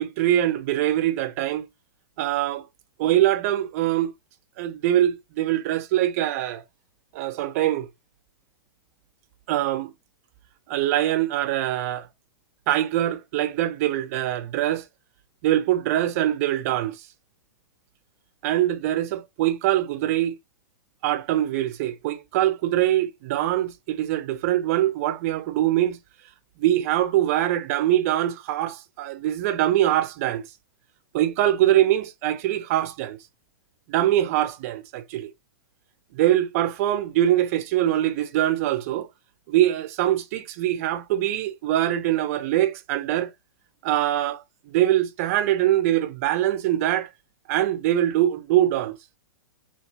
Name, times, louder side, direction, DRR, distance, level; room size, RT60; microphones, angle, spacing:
voice 1, 0.0-1.7 2.2-2.7 3.0-4.1 4.6-6.6 7.1-7.9 9.5-9.9 10.7-12.1 12.7-14.9 15.4-17.0 18.4-20.4 21.0-26.0 26.6-30.4 31.1-33.2 33.9-35.3 36.1-39.1 39.5-43.3 43.8-47.1 47.5-48.9, right 13 dB, 40° right, 0.5 m, -23 dB
2.8 x 2.8 x 2.8 m
figure-of-eight pair, 100°, 12 cm